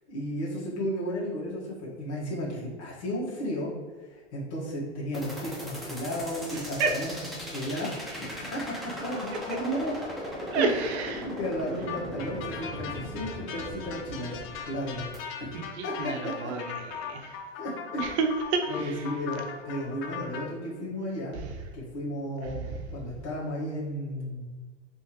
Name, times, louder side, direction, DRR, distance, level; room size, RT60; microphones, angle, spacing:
voice 1, 0.1-3.7 4.0-8.0 8.3-9.9 10.5-10.7 11.2-15.1 15.4-15.5 15.8-16.5 17.6-18.2 18.7-21.4 21.7-24.4, equal, 75° left, -6 dB, 1.4 m, -34 dB
sound 1, 5.1-15.2, equal, ahead, 0.7 m, -38 dB
voice 2, 10.5-11.3 15.5-16.7 17.0-17.3 18.0-18.9, right 4 dB, 70° right, 4 dB, 0.8 m, -29 dB
sound 2, 11.9-20.4, left 7 dB, 40° left, 0.6 m, -39 dB
3.4 x 2.7 x 2.9 m, 1.4 s
hypercardioid pair, 120°, 35 cm